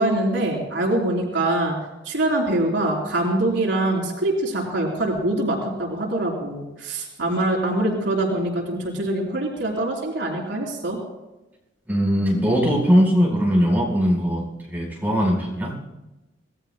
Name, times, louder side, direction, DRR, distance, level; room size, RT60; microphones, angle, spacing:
voice 1, 0.0-1.8 2.1-11.0, right 1 dB, 75° right, -3 dB, 4.1 m, -24 dB
voice 2, 11.9-15.7, equal, 10° right, -3 dB, 4.7 m, -20 dB
25.5 x 19.0 x 2.3 m, 1.0 s
head